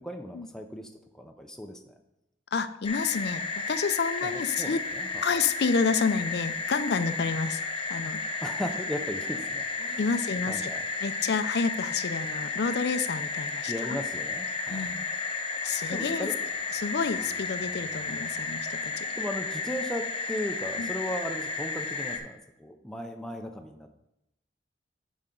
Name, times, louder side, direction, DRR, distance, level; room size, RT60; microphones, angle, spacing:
voice 1, 0.0-1.9 4.2-5.2 8.4-10.1 10.5-10.9 13.7-14.9 15.7-16.4 19.1-23.9, equal, 5° left, 3 dB, 0.5 m, -37 dB
voice 2, 2.5-3.4 3.7-4.8 5.2-7.6 7.9-8.2 10.0-10.7 11.0-14.0 14.7-15.1 15.6-16.3 16.7-19.1 20.8-20.9, left 5 dB, 65° left, 12 dB, 0.5 m, -29 dB
sound 1, 2.8-22.2, left 4 dB, 30° left, 0.8 m, -33 dB
10.0 x 5.1 x 3.7 m, 0.85 s
head